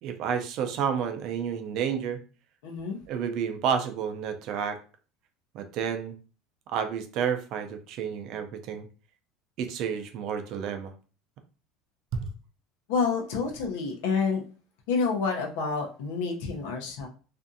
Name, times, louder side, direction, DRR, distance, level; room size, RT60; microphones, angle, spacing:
voice 1, 0.0-2.2 3.1-4.8 5.5-6.1 6.7-8.9 9.6-10.9 12.1-12.3, right 7 dB, 45° right, 6 dB, 0.4 m, -30 dB
voice 2, 2.6-3.0 12.9-14.4 14.9-17.1, left 5 dB, 85° left, 2 dB, 0.7 m, -28 dB
2.5 x 2.4 x 2.6 m, 0.37 s
cardioid pair, 170°, 0 cm